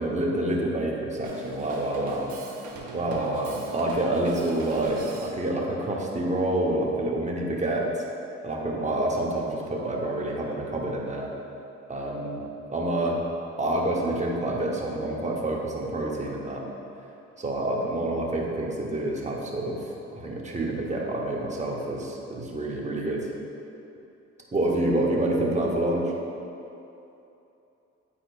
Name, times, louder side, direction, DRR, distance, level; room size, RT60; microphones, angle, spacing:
voice 1, 0.0-2.3 2.9-8.0 8.4-11.3 11.9-12.4 12.7-13.2 13.6-16.6 17.4-19.8 20.1-23.3 24.5-26.1, right 1 dB, 25° right, -2 dB, 1.1 m, -27 dB
Drum kit, 1.2-5.4, right 3 dB, 75° right, 0.9 m, -40 dB
9.2 x 4.3 x 2.5 m, 2.8 s
cardioid pair, 75°, 29 cm